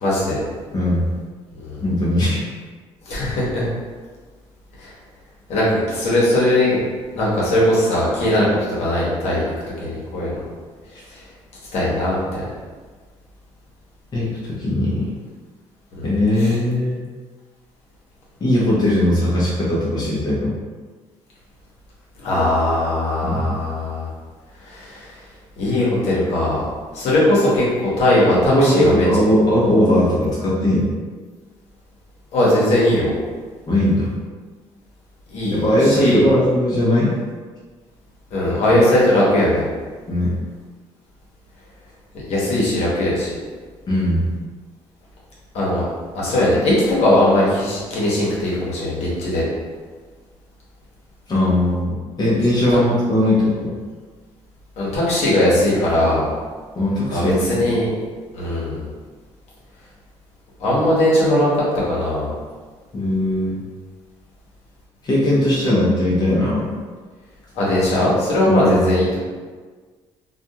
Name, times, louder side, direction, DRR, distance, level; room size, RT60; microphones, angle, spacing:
voice 1, 0.0-0.4 1.5-1.8 3.1-3.7 4.8-4.9 5.5-6.8 7.1-8.5 8.8-9.5 9.8-10.4 11.1-11.2 11.7-12.2 16.0-16.1 16.4-16.5 22.2-24.1 24.6-25.1 25.6-26.6 26.9-29.1 32.3-33.2 35.3-36.3 38.3-39.6 42.3-43.3 45.5-45.8 46.1-49.4 52.7-52.8 54.8-56.3 57.1-57.9 58.3-58.8 60.6-61.6 61.9-62.3 67.5-69.2, left 1 dB, 70° left, -6 dB, 0.9 m, -19 dB
voice 2, 0.7-1.0 1.8-2.4 14.1-15.1 16.0-17.0 18.4-20.5 23.2-23.6 28.5-30.9 33.7-34.1 35.5-37.1 40.1-40.4 43.9-44.3 51.3-53.7 56.7-57.7 62.9-63.6 65.0-66.7 68.5-68.9, left 1 dB, 35° left, -6 dB, 0.7 m, -19 dB
2.4 x 2.2 x 2.7 m, 1.5 s
cardioid pair, 100°, 11 cm